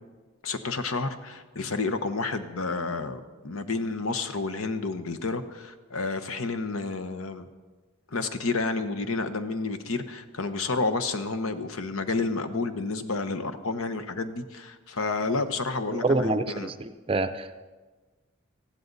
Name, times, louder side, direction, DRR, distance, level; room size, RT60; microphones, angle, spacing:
voice 1, 0.4-7.5 8.1-16.7, left 3 dB, 75° left, 10 dB, 1.0 m, -30 dB
voice 2, 16.0-17.7, right 2 dB, 25° right, 10 dB, 0.5 m, -27 dB
19.0 x 14.5 x 4.0 m, 1.3 s
head